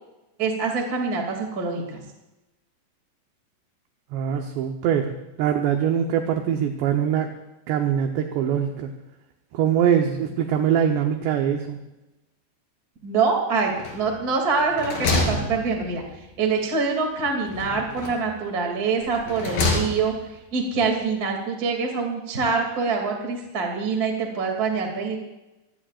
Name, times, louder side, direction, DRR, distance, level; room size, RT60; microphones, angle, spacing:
voice 1, 0.4-2.0 13.0-25.2, right 4 dB, 30° right, 2 dB, 2.0 m, -25 dB
voice 2, 4.1-5.1 5.4-7.3 7.7-8.9 9.5-11.8, right 8 dB, 75° right, 4 dB, 2.9 m, -23 dB
sound 1, 13.8-14.3 14.6-16.2 17.5-18.3 19.0-20.3, left 2 dB, 50° left, 4.9 m, -27 dB
24.5 x 18.0 x 2.5 m, 1.0 s
omnidirectional pair, 5.6 m